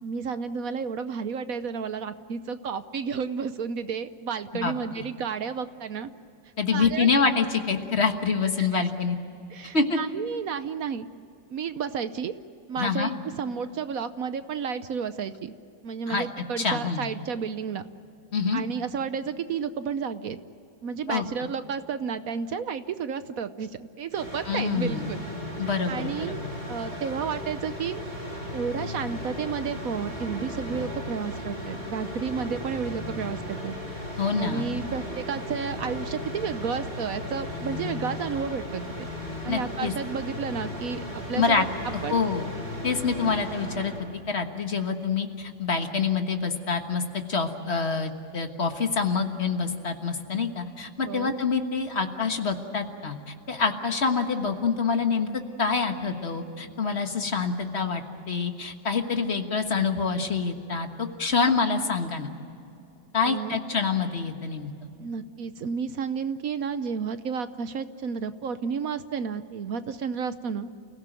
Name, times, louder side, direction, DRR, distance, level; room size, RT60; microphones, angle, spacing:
voice 1, 0.0-6.1 6.7-7.1 8.6-8.9 9.5-11.1 11.5-12.4 12.7-15.5 15.8-17.8 18.5-20.4 20.8-25.2 25.9-26.4 26.7-28.0 28.5-33.8 34.4-39.1 39.4-41.7 42.0-42.2 51.0-51.3 63.2-63.6 65.0-70.7, right 6 dB, 60° right, 12 dB, 1.1 m, -32 dB
voice 2, 4.6-5.0 6.6-9.2 9.7-10.0 12.8-13.2 16.1-16.3 16.6-17.1 18.3-18.6 21.1-21.5 24.5-25.1 25.6-26.5 34.2-34.7 39.5-39.9 41.3-41.6 41.9-42.5 42.8-43.9 44.3-55.3 55.6-62.3 63.1-64.7, left 5 dB, 40° left, 6 dB, 1.5 m, -26 dB
sound 1, 24.1-44.0, left 1 dB, 25° right, 6.4 m, -36 dB
29.0 x 16.5 x 9.1 m, 2.7 s
omnidirectional pair, 2.0 m